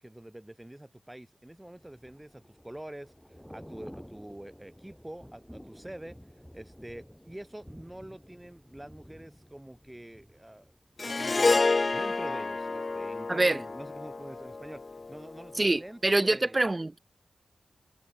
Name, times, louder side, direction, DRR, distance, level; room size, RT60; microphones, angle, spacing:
voice 1, 0.0-3.1 3.5-6.2 6.5-10.7 11.0-14.8 15.1-16.7, right 1 dB, 15° right, 1.7 m, -46 dB
Thunder / Rain, 1.6-11.5 11.9-12.1, equal, 5° left, 4.6 m, -52 dB
Harp, 11.0-15.4, left 3 dB, 50° left, 0.4 m, -29 dB
voice 2, 13.3-13.6 15.6-17.0, right 2 dB, 30° right, 0.4 m, -25 dB
cardioid pair, 50°, 0 cm